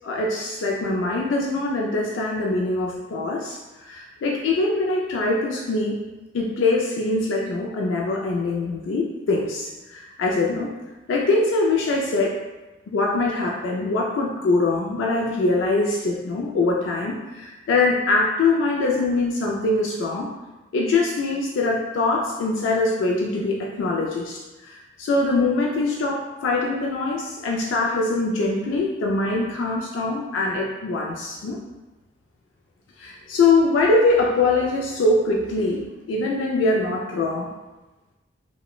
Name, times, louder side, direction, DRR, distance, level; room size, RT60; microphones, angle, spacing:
voice 1, 0.0-3.6 3.8-6.0 6.3-10.7 11.1-12.4 12.9-20.3 20.7-31.6 33.0-37.5, left 3 dB, 80° left, -2 dB, 0.3 m, -23 dB
2.9 x 2.1 x 2.3 m, 1.1 s
head